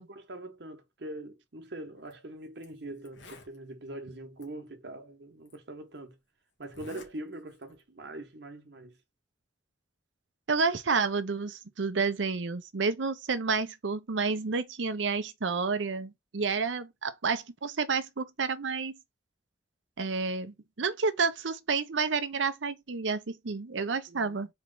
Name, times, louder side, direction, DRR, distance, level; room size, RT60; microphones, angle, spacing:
voice 1, 0.0-6.2 6.6-9.0 24.1-24.4, right 1 dB, 65° right, 1.1 m, -43 dB
Zipper (clothing), 2.0-2.1 2.6-2.7 3.0-3.6 4.4-4.5 5.5-5.6 6.6-7.1 7.5-7.8, left 2 dB, 85° left, 1.7 m, -50 dB
voice 2, 10.5-19.0 20.0-24.5, right 4 dB, 85° right, 0.7 m, -30 dB
4.4 x 3.2 x 3.8 m
head